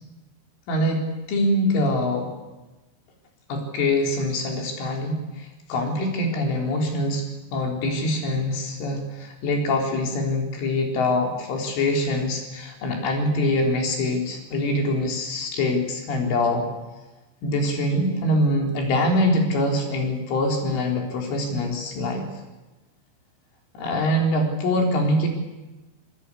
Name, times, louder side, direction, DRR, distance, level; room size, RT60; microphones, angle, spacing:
voice 1, 0.7-2.3 3.5-7.3 7.5-16.7 17.4-22.3 23.7-25.3, left 1 dB, 70° left, 1 dB, 6.1 m, -24 dB
25.5 x 19.5 x 8.6 m, 1.1 s
omnidirectional pair, 5.9 m